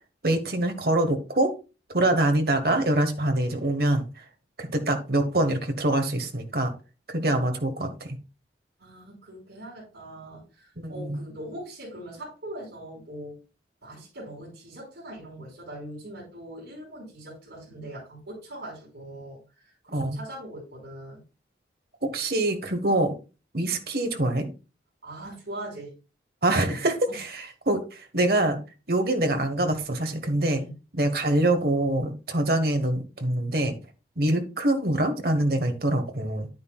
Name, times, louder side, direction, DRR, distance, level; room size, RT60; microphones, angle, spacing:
voice 1, 0.2-1.5 1.9-4.2 4.6-6.7 7.1-8.2 10.8-11.2 19.9-20.2 22.0-23.1 23.5-24.5 26.4-28.6 28.9-30.6 30.9-33.8 34.2-36.5, right 1 dB, 55° right, 6 dB, 1.4 m, -25 dB
voice 2, 8.8-13.4 13.8-21.2 25.0-25.9 27.1-27.2 30.5-30.7, right 1 dB, 75° right, -5 dB, 4.9 m, -41 dB
9.5 x 9.3 x 2.4 m, 0.31 s
head